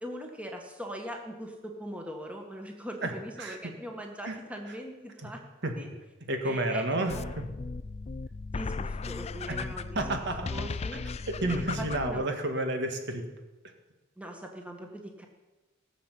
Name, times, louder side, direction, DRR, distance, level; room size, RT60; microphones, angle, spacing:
voice 1, 0.0-5.4 5.8-5.9 6.4-7.2 8.5-10.1 10.5-11.0 11.5-12.2 14.2-15.3, equal, 5° right, 2 dB, 1.7 m, -41 dB
voice 2, 3.4-3.7 4.3-4.4 5.2-5.3 5.6-5.7 6.3-7.5 9.5-9.6 10.0-10.5 11.3-13.2, right 1 dB, 60° right, 5 dB, 1.9 m, -30 dB
sound 1, 7.1-12.2, left 4 dB, 35° left, 0.4 m, -36 dB
17.5 x 7.1 x 8.3 m, 1.1 s
head